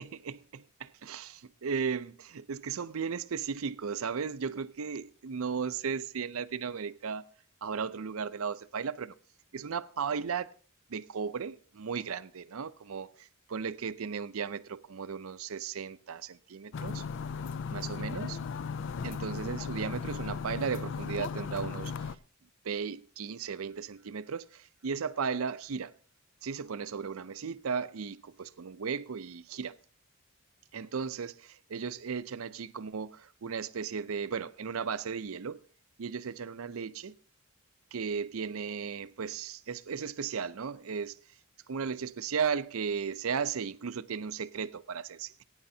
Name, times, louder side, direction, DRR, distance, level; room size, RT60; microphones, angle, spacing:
voice 1, 0.0-7.2 7.6-9.1 9.5-10.5 10.9-17.0 17.7-18.4 19.0-22.1 22.6-25.9 26.4-29.7 30.7-35.6 36.0-37.1 37.9-41.2 41.7-45.3, right 6 dB, 75° right, 0.5 m, -35 dB
sound 1, 16.7-22.2, left 5 dB, 60° left, 0.4 m, -36 dB
19.0 x 9.7 x 2.7 m
head